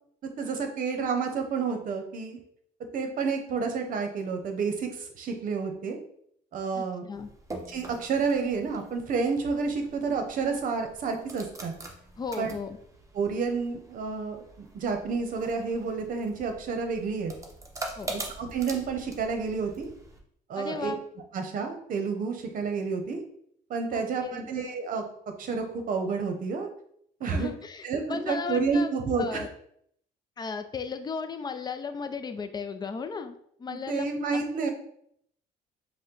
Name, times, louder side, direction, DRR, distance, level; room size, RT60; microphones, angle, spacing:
voice 1, 0.2-2.4 2.9-6.0 6.5-7.0 7.7-11.7 12.4-12.5 13.1-17.3 18.1-19.9 20.5-21.0 21.3-23.2 23.7-25.0 25.4-26.7 27.2-27.5 27.8-29.4 33.7-34.7, right 5 dB, 55° right, 5 dB, 0.8 m, -30 dB
voice 2, 6.7-7.3 12.2-12.8 18.0-18.1 20.6-21.0 23.9-24.5 27.3-28.9 29.2-29.5 30.4-34.7, left 5 dB, 25° left, 8 dB, 0.4 m, -36 dB
sound 1, 7.1-20.2, right 2 dB, 20° right, 0.8 m, -44 dB
5.4 x 2.2 x 3.8 m, 0.69 s
cardioid pair, 110°, 17 cm